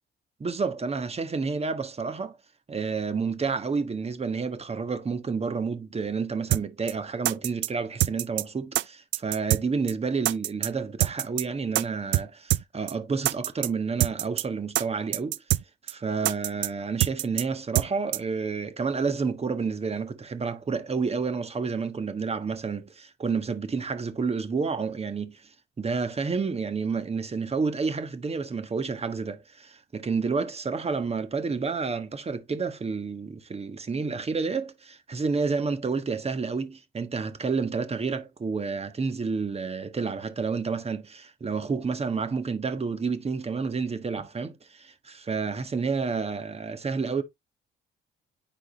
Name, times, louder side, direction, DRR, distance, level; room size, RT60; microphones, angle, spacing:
voice 1, 0.4-2.4 2.7-15.4 15.9-47.2, right 5 dB, 30° right, 1.4 m, -30 dB
sound 1, 6.5-6.6 6.9-7.0 7.2-7.7 8.0-8.4 8.7-8.8 9.1-9.6 9.9-10.0 10.2-10.7 11.0-11.4 11.7-11.8 12.1-12.2 12.5-12.6 12.9-13.0 13.2-13.7 14.0-14.4 14.7-14.8 15.1-15.6 15.9-16.0 16.2-16.7 17.0-17.4 17.7-17.9 18.1-18.2, right 15 dB, 75° right, 0.4 m, -25 dB
9.8 x 3.8 x 4.0 m
cardioid pair, 90°, 20 cm